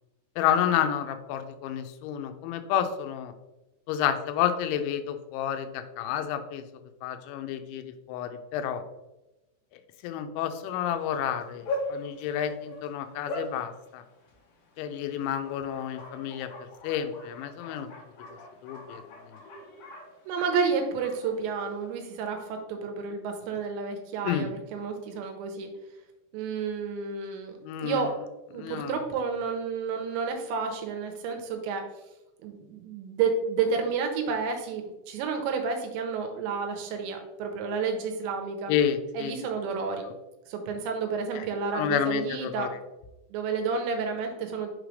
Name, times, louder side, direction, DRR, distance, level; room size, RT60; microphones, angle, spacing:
voice 1, 0.4-3.3 3.9-6.7 7.0-8.8 10.0-11.6 11.9-14.0 14.8-16.5 16.8-17.9 18.6-19.0 24.2-24.5 27.6-28.1 28.6-29.0 38.7-39.3 40.0-40.1 41.4-41.5 41.7-42.8, left 9 dB, 90° left, 8 dB, 3.0 m, -30 dB
Bark, 10.9-22.2, left 1 dB, 65° left, 2.4 m, -41 dB
voice 2, 20.3-25.7 26.3-28.2 28.5-31.8 32.4-38.7 39.1-40.0 40.5-42.7 43.3-44.7, right 5 dB, 85° right, 4 dB, 3.0 m, -30 dB
6.8 x 5.0 x 3.2 m, 0.99 s
omnidirectional pair, 5.3 m